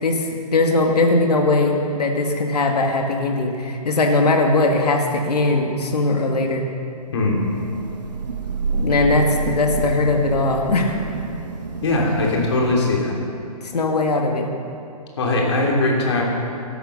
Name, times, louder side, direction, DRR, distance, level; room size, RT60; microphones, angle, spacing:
voice 1, 0.0-6.7 8.7-11.0 13.7-14.5, left 2 dB, 75° left, 2 dB, 2.0 m, -20 dB
Thunder / Rain, 7.3-13.0, right 3 dB, 85° right, 1.6 m, -28 dB
voice 2, 11.8-13.2 15.2-16.2, left 2 dB, 45° left, -2 dB, 3.5 m, -20 dB
16.0 x 11.5 x 6.7 m, 2.6 s
hypercardioid pair, 170°, 20 cm